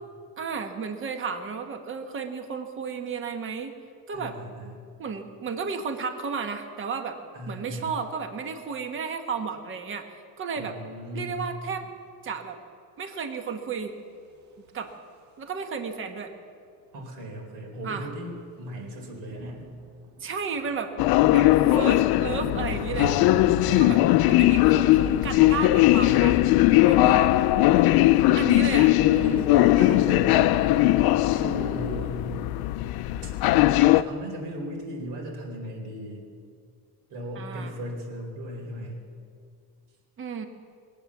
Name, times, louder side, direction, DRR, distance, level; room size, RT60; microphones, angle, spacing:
voice 1, 0.4-3.7 4.1-4.4 5.0-7.2 7.5-10.1 10.4-10.8 11.1-11.8 12.2-12.6 13.0-13.9 14.7-14.9 15.4-16.3 17.8-18.1 20.2-20.9 21.3-23.2 23.7-24.0 24.2-26.3 26.8-27.3 27.7-28.0 28.3-29.4 37.3-37.7 40.2-40.5, right 5 dB, 35° right, 6 dB, 1.2 m, -33 dB
voice 2, 4.1-4.8 7.3-8.0 10.6-11.3 16.9-19.6 23.6-24.1 26.0-27.2 27.9-28.2 29.2-30.8 31.3-32.2 33.2-33.3 33.9-36.2 37.1-39.0, right 1 dB, 80° right, -1 dB, 4.4 m, -37 dB
sound 1, 14.1-15.7 17.0-17.1 17.3-17.5 17.8-29.9, right 4 dB, 50° right, 1.7 m, -45 dB
sound 2, 21.0-34.0, left 16 dB, 80° left, 0.6 m, -20 dB
22.0 x 8.6 x 7.2 m, 2.3 s
cardioid pair, 170°, 36 cm